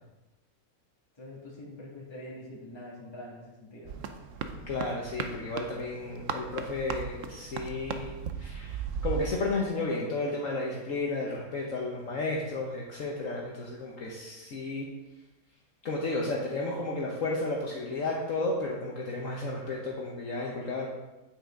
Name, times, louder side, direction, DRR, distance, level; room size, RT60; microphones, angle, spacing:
voice 1, 1.1-3.9, left 1 dB, 15° left, -5 dB, 2.3 m, -44 dB
sound 1, 3.9-9.3, right 7 dB, 65° right, 1.0 m, -37 dB
voice 2, 4.7-8.1 8.4-8.8 9.0-14.9 15.8-20.9, left 2 dB, 60° left, -2 dB, 1.5 m, -33 dB
9.0 x 8.7 x 3.8 m, 1.1 s
omnidirectional pair, 1.6 m